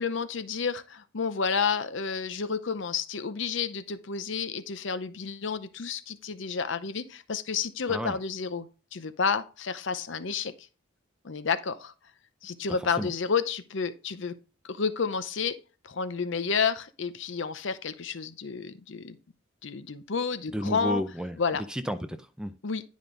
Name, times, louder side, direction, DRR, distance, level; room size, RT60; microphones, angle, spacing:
voice 1, 0.0-10.5 11.2-11.9 12.4-14.4 14.6-15.6 15.8-19.2 19.6-21.0 21.4-21.6 22.6-22.8, left 5 dB, 65° left, 0.7 m, -30 dB
voice 2, 20.5-21.4 21.7-22.5, equal, 5° right, 0.4 m, -32 dB
10.0 x 5.2 x 3.8 m
head